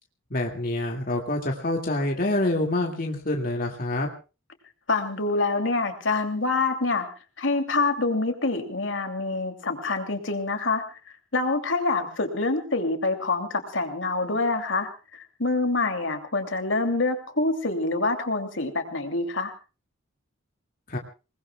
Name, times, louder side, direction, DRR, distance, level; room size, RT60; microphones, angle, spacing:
voice 1, 0.3-4.1 20.9-21.0, left 1 dB, 45° left, 1 dB, 2.3 m, -26 dB
voice 2, 4.9-7.1 7.4-10.8 11.3-19.5, left 3 dB, 75° left, 6 dB, 2.8 m, -26 dB
27.5 x 20.0 x 2.3 m, 0.33 s
head